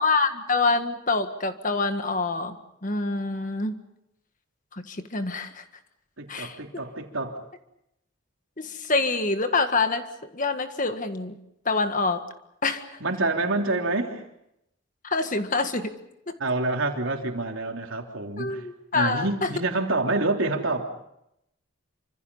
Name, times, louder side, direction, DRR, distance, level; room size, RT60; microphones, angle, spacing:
voice 1, 0.0-2.6 2.8-3.8 4.7-5.6 6.3-6.6 8.6-10.1 10.3-11.4 11.7-12.2 12.6-13.0 15.0-16.0 16.3-16.4 18.4-19.5, left 3 dB, 40° left, 8 dB, 1.7 m, -26 dB
voice 2, 6.2-7.4 13.0-14.2 16.4-18.6 18.9-20.9, right 2 dB, 70° right, 2 dB, 3.4 m, -27 dB
27.5 x 26.0 x 5.6 m, 0.81 s
head